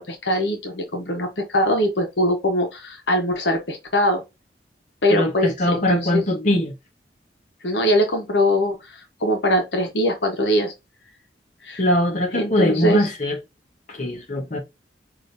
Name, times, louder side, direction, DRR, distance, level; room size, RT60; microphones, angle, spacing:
voice 1, 0.0-4.2 5.0-6.3 7.6-10.7 11.6-11.8 12.3-13.1, equal, 75° left, 1.1 m, -22 dB
voice 2, 5.1-6.7 11.8-13.4 13.9-14.6, left 1 dB, 45° left, 1.2 m, -21 dB
5.0 x 2.8 x 2.6 m
head